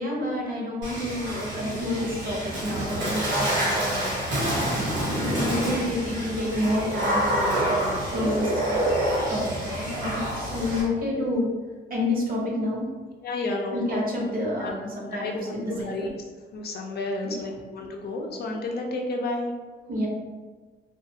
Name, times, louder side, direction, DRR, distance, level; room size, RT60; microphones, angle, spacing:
voice 1, 0.0-4.1 5.1-9.0 9.3-11.5 11.9-12.8 13.7-16.0 17.2-17.5 19.9-20.1, left 1 dB, 45° right, -2 dB, 0.8 m, -29 dB
Water / Splash splatter, 0.8-10.8, right 1 dB, 65° right, 1.2 m, -27 dB
voice 2, 13.2-14.0 14.6-14.7 15.1-16.1 16.5-19.5, left 2 dB, 55° left, 1 dB, 0.5 m, -31 dB
2.4 x 2.3 x 2.7 m, 1.4 s
cardioid pair, 90°, 20 cm